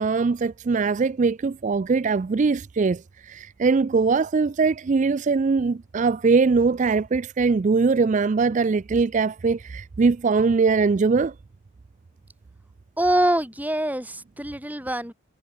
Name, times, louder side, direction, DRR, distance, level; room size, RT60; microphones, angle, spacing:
voice 1, 0.0-11.3, right 4 dB, 35° right, 0.3 m, -21 dB
voice 2, 13.0-15.1, right 1 dB, 5° right, 3.5 m, -24 dB
head